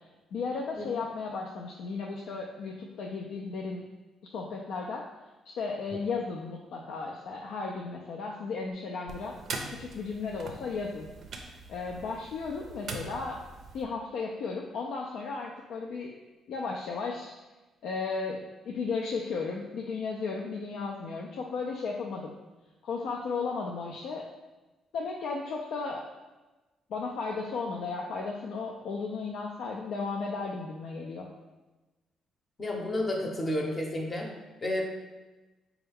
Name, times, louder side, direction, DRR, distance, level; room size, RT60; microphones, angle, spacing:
voice 1, 0.3-3.8 4.2-5.0 5.5-9.3 9.7-11.1 11.7-13.4 13.7-16.2 16.5-17.3 17.8-22.3 22.8-24.2 24.9-26.1 26.9-31.3, left 4 dB, 80° left, -1 dB, 0.3 m, -35 dB
sound 1, 9.1-13.9, right 3 dB, 60° right, 0.5 m, -42 dB
voice 2, 32.6-34.3 34.6-34.8, left 1 dB, 30° left, 0 dB, 0.7 m, -31 dB
4.2 x 2.3 x 3.4 m, 1.1 s
cardioid pair, 90°, 0 cm